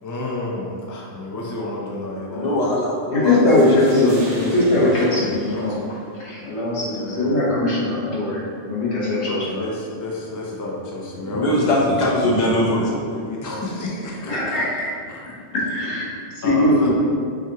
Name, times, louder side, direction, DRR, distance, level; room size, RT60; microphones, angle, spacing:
voice 1, 0.0-2.6 3.3-5.8 7.0-7.4 9.3-11.5 13.2-14.6 15.1-15.2 16.4-16.9, left 2 dB, 25° left, -3 dB, 0.4 m, -30 dB
voice 2, 2.3-3.4 11.3-13.2, left 1 dB, 40° left, -5 dB, 0.9 m, -21 dB
voice 3, 3.1-5.8 6.1-9.7 14.2-14.9 15.5-16.9, left 1 dB, 75° left, -6 dB, 1.3 m, -20 dB
sound 1, 3.2-6.3, right 1 dB, 85° right, 1.1 m, -42 dB
6.0 x 2.4 x 2.8 m, 2.4 s
omnidirectional pair, 1.1 m